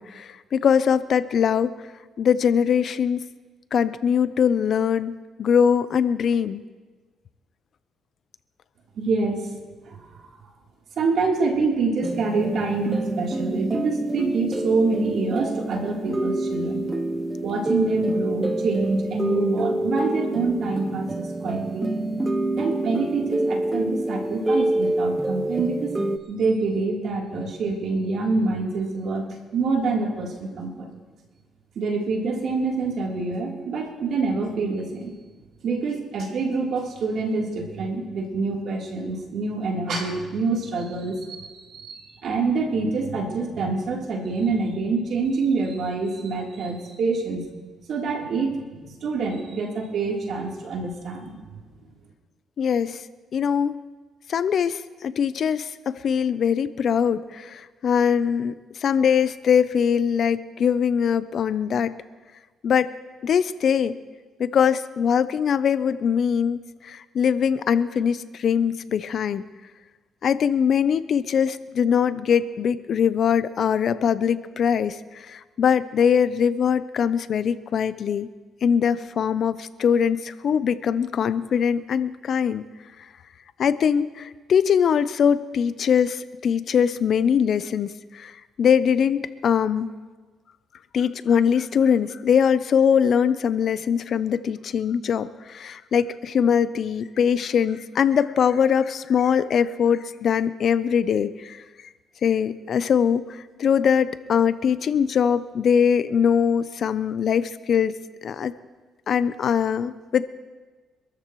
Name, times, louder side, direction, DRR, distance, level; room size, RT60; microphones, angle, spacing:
voice 1, 0.0-1.7 2.2-3.2 3.7-6.6 52.6-53.0 53.3-53.8 54.3-61.9 62.6-62.9 63.2-63.9 64.4-69.4 70.2-78.3 78.6-82.6 83.6-89.9 90.9-101.6 102.2-108.0 108.2-108.5 109.1-110.3, left 7 dB, 60° left, 14 dB, 0.7 m, -22 dB
voice 2, 9.0-9.6 9.9-10.1 11.0-16.9 17.4-21.9 22.6-25.9 26.3-29.3 29.5-30.9 31.8-35.1 35.6-47.5 47.9-51.6, right 3 dB, 65° right, -1 dB, 3.6 m, -26 dB
sound 1, 12.0-26.2, right 1 dB, 20° right, 0.9 m, -27 dB
26.0 x 13.5 x 3.2 m, 1.3 s
cardioid pair, 90°, 0 cm